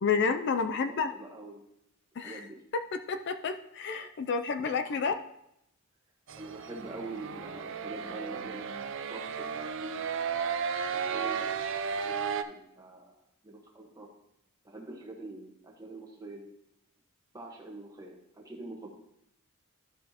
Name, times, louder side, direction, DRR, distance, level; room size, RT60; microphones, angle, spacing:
voice 1, 0.0-1.1 2.2-2.4 3.1-5.1, left 5 dB, 50° left, 7 dB, 0.4 m, -30 dB
voice 2, 0.6-1.7 2.2-2.6 6.3-10.6 10.9-12.2 12.4-13.1 13.4-14.1 14.6-16.5 17.3-18.9, right 2 dB, 15° right, -1 dB, 1.2 m, -45 dB
sound 1, 6.3-12.4, right 6 dB, 60° right, 0.4 m, -34 dB
12.0 x 5.2 x 2.9 m, 0.79 s
head